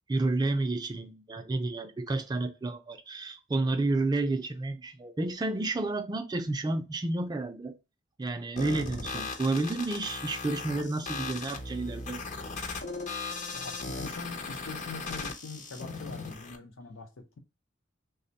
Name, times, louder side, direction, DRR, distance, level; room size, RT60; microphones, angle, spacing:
voice 1, 0.1-7.7 8.2-12.2, right 2 dB, 20° right, 0.3 m, -30 dB
sound 1, 8.6-16.6, left 3 dB, 35° left, 0.5 m, -38 dB
voice 2, 13.5-17.4, left 3 dB, 80° left, 0.7 m, -43 dB
3.3 x 2.1 x 3.9 m
head